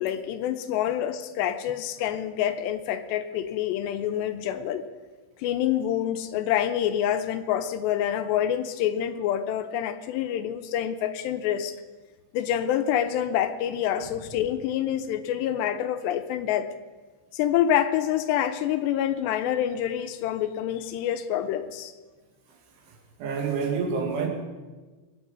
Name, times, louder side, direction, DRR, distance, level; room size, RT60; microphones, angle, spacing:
voice 1, 0.0-4.9 5.4-11.8 12.3-16.7 17.3-21.9, left 10 dB, 80° left, 9 dB, 2.7 m, -27 dB
voice 2, 23.2-24.3, right 5 dB, 85° right, 2 dB, 4.6 m, -27 dB
23.0 x 9.3 x 5.3 m, 1.3 s
omnidirectional pair, 5.2 m